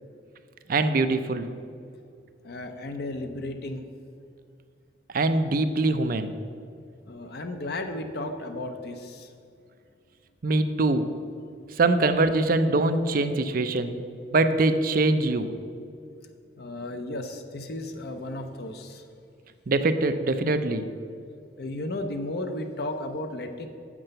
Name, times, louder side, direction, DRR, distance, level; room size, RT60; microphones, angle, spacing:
voice 1, 0.7-1.5 5.1-6.3 10.4-11.1 11.8-14.0 14.3-15.5 19.7-20.9, right 2 dB, 55° right, 9 dB, 0.5 m, -23 dB
voice 2, 2.4-3.9 7.1-9.3 16.1-16.2 16.6-19.1 21.6-23.7, left 1 dB, 60° left, 5 dB, 0.7 m, -34 dB
7.7 x 6.1 x 6.6 m, 2.4 s
head